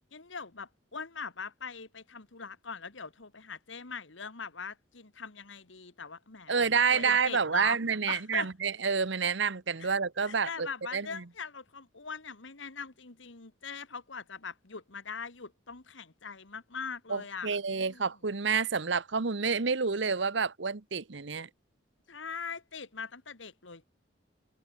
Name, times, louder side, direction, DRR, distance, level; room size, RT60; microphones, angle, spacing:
voice 1, 0.1-7.8 8.1-8.5 9.8-9.9 10.2-18.1 22.1-23.8, left 5 dB, 75° left, 1.8 m, -42 dB
voice 2, 6.5-11.1 17.1-21.5, right 5 dB, 65° right, 1.0 m, -29 dB
head